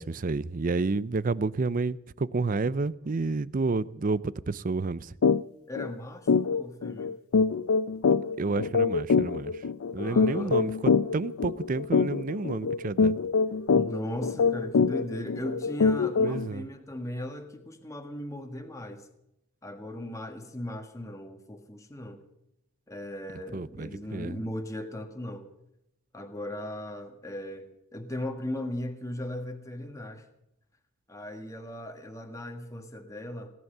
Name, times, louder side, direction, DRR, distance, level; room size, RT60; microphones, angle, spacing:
voice 1, 0.0-5.1 8.4-9.5 9.9-13.2 16.2-16.7 23.5-24.4, right 3 dB, 40° right, 0.5 m, -30 dB
sound 1, 5.2-5.4 5.7-5.9 6.3-16.5, left 5 dB, 85° left, 0.5 m, -25 dB
voice 2, 5.7-7.1 9.9-11.0 13.7-19.1 19.6-22.2 22.9-25.5 26.1-30.2 31.1-33.5, left 1 dB, 15° left, 1.6 m, -38 dB
18.0 x 10.5 x 6.7 m
head